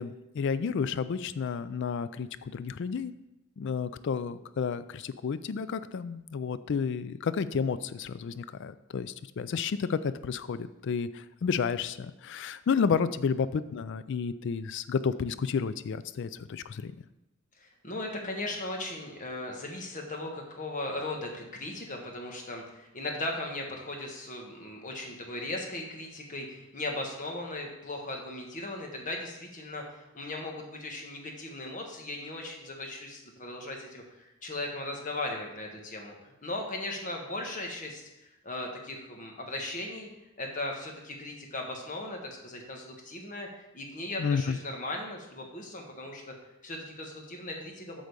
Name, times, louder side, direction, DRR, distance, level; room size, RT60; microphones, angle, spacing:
voice 1, 0.0-3.1 3.6-16.9 44.2-44.6, left 6 dB, 55° left, 14 dB, 0.3 m, -31 dB
voice 2, 17.6-38.1 38.4-40.1 40.4-46.3 46.6-48.0, left 2 dB, 35° left, 1 dB, 1.3 m, -38 dB
8.1 x 3.9 x 6.6 m, 0.96 s
head